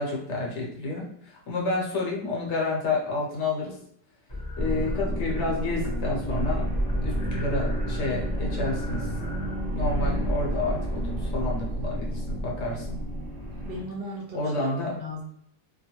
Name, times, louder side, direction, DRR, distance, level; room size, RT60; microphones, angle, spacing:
voice 1, 0.0-3.8 4.6-6.7 7.0-9.1 9.7-13.0 14.3-15.0, left 3 dB, 65° left, -2 dB, 1.0 m, -30 dB
sound 1, 4.3-5.5 5.8-6.1 6.4-11.1, left 2 dB, 25° left, 0.6 m, -39 dB
sound 2, 4.6-13.8, right 1 dB, 30° right, 0.4 m, -29 dB
voice 2, 13.6-15.2, left 1 dB, 60° right, -3 dB, 0.7 m, -37 dB
2.3 x 2.1 x 2.9 m, 0.68 s
omnidirectional pair, 1.4 m